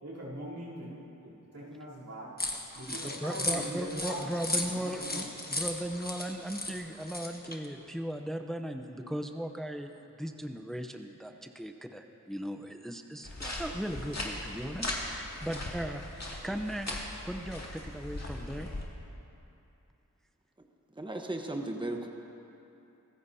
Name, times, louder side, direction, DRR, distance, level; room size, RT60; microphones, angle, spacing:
voice 1, 0.0-2.4 2.7-4.3 4.7-5.5, right 1 dB, 85° right, -9 dB, 3.6 m, -42 dB
sound 1, 2.4-7.7, left 2 dB, 30° left, 1.5 m, -36 dB
voice 2, 2.9-17.0 17.2-18.7, equal, ahead, 5 dB, 0.7 m, -37 dB
sound 2, 13.2-18.8, left 1 dB, 55° left, 2.3 m, -39 dB
voice 3, 21.0-22.1, right 2 dB, 15° right, 2 dB, 1.1 m, -35 dB
24.5 x 15.0 x 2.8 m, 2.8 s
wide cardioid pair, 45°, 32 cm